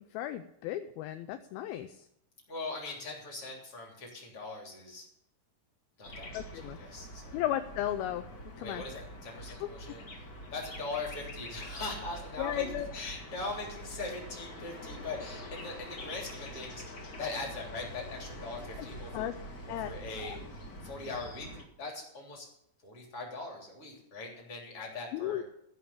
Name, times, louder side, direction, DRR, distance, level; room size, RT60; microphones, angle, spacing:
voice 1, 0.1-2.0 6.3-6.8 7.3-8.3 8.6-8.8 9.6-9.7 12.4-12.9 19.1-19.3 19.7-19.9 20.2-20.4 25.1-25.4, left 12 dB, 80° left, 9 dB, 2.3 m, -35 dB
voice 2, 2.5-5.1 6.0-6.5 6.8-7.4 8.6-12.7 12.9-19.3 19.7-20.4 20.8-21.5 21.8-22.5 22.8-25.4, left 3 dB, 35° left, -1 dB, 3.8 m, -41 dB
sound 1, 6.0-21.6, equal, 60° left, 0.9 m, -45 dB
15.0 x 5.9 x 8.5 m, 0.74 s
omnidirectional pair, 4.7 m